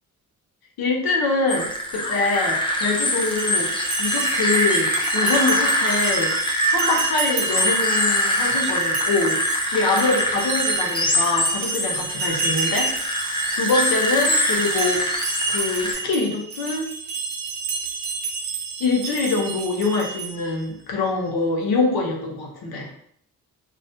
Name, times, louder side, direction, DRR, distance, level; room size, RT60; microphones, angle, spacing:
voice 1, 0.8-3.7 4.0-6.3 6.7-9.4 9.7-12.9 13.5-16.9 18.8-22.9, left 3 dB, 85° left, 0 dB, 0.7 m, -24 dB
sound 1, 1.5-15.9, left 1 dB, 15° left, 0.4 m, -23 dB
sound 2, 3.1-20.6, right 4 dB, 85° right, 0.5 m, -30 dB
2.3 x 2.1 x 2.6 m, 0.68 s
cardioid pair, 80°, 36 cm